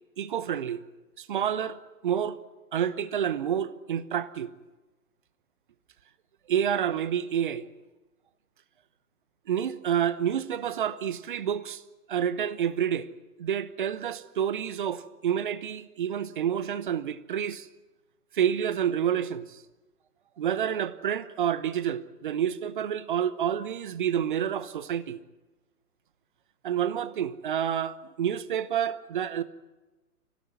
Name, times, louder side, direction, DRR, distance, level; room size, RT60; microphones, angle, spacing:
voice 1, 0.2-0.8 1.2-2.4 2.7-4.5 6.5-7.7 9.5-11.8 12.1-13.1 13.4-17.7 18.3-19.6 20.4-25.2 26.6-29.4, right 9 dB, 35° right, 1.0 m, -29 dB
24.5 x 16.5 x 9.6 m
figure-of-eight pair, 130°, 45 cm